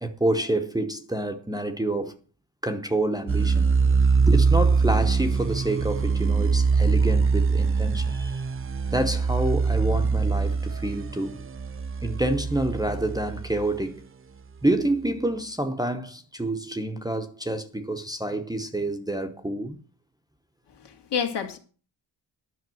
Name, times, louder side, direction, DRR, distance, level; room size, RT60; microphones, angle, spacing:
voice 1, 0.0-2.2 2.6-3.7 4.3-8.4 8.9-11.4 12.0-14.0 14.6-19.8, right 1 dB, 10° right, 0.9 m, -28 dB
sound 1, 3.3-13.8, right 5 dB, 30° right, 0.5 m, -23 dB
voice 2, 20.8-21.6, left 7 dB, 65° left, 2.2 m, -29 dB
11.0 x 6.5 x 7.6 m
wide cardioid pair, 160°, 44 cm